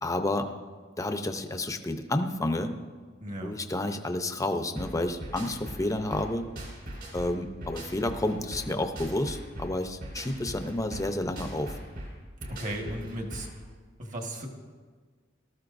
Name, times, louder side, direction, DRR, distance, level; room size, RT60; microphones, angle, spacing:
voice 1, 0.0-0.5 1.0-2.7 3.4-6.4 7.1-11.8, left 1 dB, 15° left, 7 dB, 0.7 m, -30 dB
voice 2, 3.2-3.6 12.5-13.5 14.0-14.5, right 1 dB, 40° right, 2 dB, 1.6 m, -35 dB
sound 1, 4.8-13.6, equal, 60° right, 4.4 m, -41 dB
19.0 x 13.5 x 2.6 m, 1.5 s
head